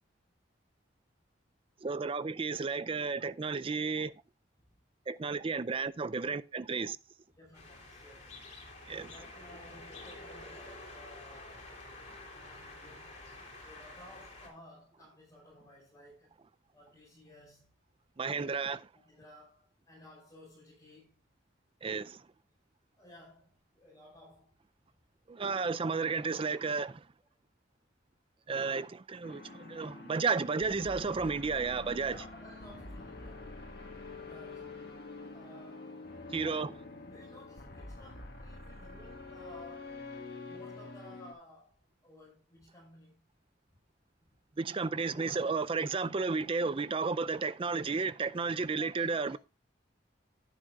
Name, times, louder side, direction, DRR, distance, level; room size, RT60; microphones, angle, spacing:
voice 1, 1.8-4.1 5.1-7.0 8.9-9.1 18.2-18.8 21.8-22.2 25.3-27.0 28.5-32.1 36.3-36.7 44.6-49.4, right 4 dB, 30° right, 0.4 m, -32 dB
voice 2, 7.3-8.4 9.1-11.7 12.3-13.2 13.6-16.3 16.7-17.8 18.3-18.6 18.9-21.2 23.0-24.5 25.6-25.9 26.4-26.5 31.8-33.6 34.2-34.7 35.3-36.0 36.4-36.8 37.0-40.0 40.5-43.2 44.6-45.5 48.7-49.4, left 1 dB, 20° left, 5.5 m, -56 dB
sound 1, 7.5-14.5, left 2 dB, 40° left, 3.3 m, -49 dB
sound 2, 29.2-41.3, left 3 dB, 55° left, 1.8 m, -46 dB
11.5 x 10.0 x 2.4 m
head